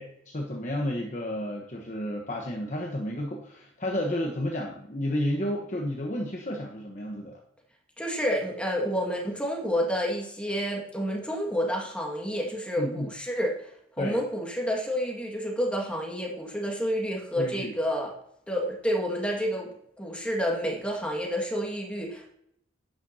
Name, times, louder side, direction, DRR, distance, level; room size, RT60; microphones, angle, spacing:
voice 1, 0.0-7.4 12.8-13.1 14.0-14.2 17.4-17.7, left 1 dB, 40° left, 0 dB, 1.1 m, -31 dB
voice 2, 8.0-13.7 14.0-18.1 18.5-22.3, equal, 5° left, 0 dB, 1.8 m, -29 dB
11.0 x 8.9 x 2.8 m, 0.73 s
head